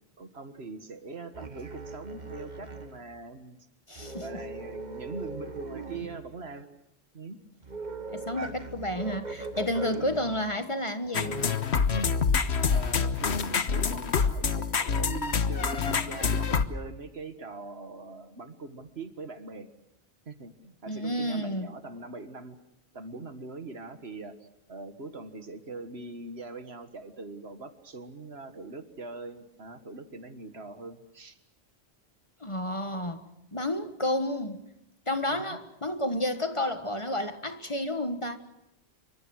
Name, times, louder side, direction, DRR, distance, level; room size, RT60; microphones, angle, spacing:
voice 1, 0.2-3.6 4.2-6.7 7.1-7.4 9.9-10.1 11.9-12.2 12.7-19.7 20.3-22.6 22.9-24.4 24.7-31.4 35.4-35.6, right 3 dB, 70° right, 1.9 m, -42 dB
sound 1, 1.3-3.1 4.0-6.3 7.6-10.4 11.0-11.5, right 3 dB, 45° right, 1.4 m, -39 dB
voice 2, 3.9-4.4 8.1-11.4 20.9-21.7 32.4-33.2 33.5-34.6 35.1-38.4, left 1 dB, 30° left, 1.5 m, -31 dB
sound 2, 11.1-16.7, left 5 dB, 80° left, 1.4 m, -26 dB
27.0 x 24.0 x 6.4 m
omnidirectional pair, 1.1 m